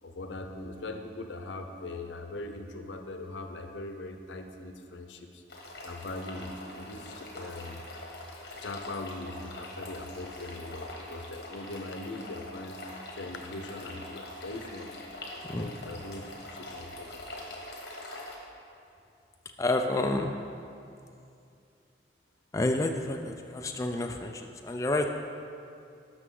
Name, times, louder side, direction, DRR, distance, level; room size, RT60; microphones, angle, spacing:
voice 1, 0.0-5.4 5.8-7.8 8.6-12.8 13.1-15.0 15.5-17.2, left 2 dB, 90° left, 5 dB, 0.7 m, -40 dB
sound 1, 5.5-18.4, left 1 dB, 60° left, 1.4 m, -44 dB
voice 2, 15.4-15.8 19.6-20.3 22.5-25.1, left 2 dB, 15° left, 3 dB, 0.3 m, -29 dB
12.5 x 6.0 x 3.7 m, 2.5 s
head